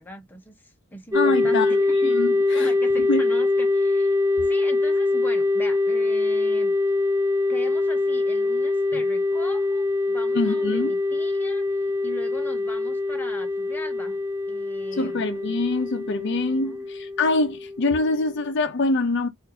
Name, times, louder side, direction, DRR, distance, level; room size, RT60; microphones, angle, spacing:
voice 1, 0.0-2.2 2.5-4.2 4.5-6.7 7.5-14.2 14.5-15.2 16.6-16.9, left 1 dB, 10° left, 0.8 m, -40 dB
voice 2, 1.1-2.7 3.1-3.2 10.3-10.9 15.0-19.3, left 3 dB, 60° left, 0.5 m, -25 dB
sound 1, 1.1-18.5, left 2 dB, 15° right, 0.3 m, -24 dB
4.3 x 2.5 x 2.6 m
head